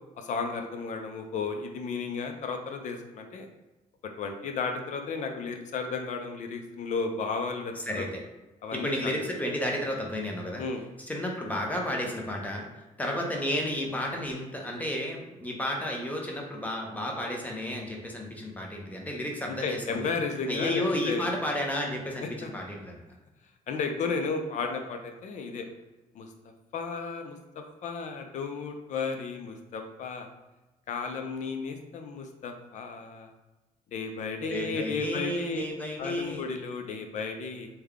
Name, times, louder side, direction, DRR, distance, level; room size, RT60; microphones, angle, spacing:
voice 1, 0.2-3.5 4.2-8.1 8.6-9.1 10.6-10.8 19.5-21.3 22.4-22.5 23.7-25.7 26.2-26.3 26.7-27.4 27.8-30.3 30.9-33.3 33.9-35.6 36.0-37.7, left 4 dB, 60° left, 5 dB, 0.5 m, -33 dB
voice 2, 7.7-8.2 8.7-10.6 11.0-12.7 13.0-20.1 20.5-23.0 34.5-36.5, left 1 dB, 10° left, 0 dB, 0.6 m, -32 dB
3.3 x 2.2 x 3.5 m, 1.1 s
cardioid pair, 120°, 15 cm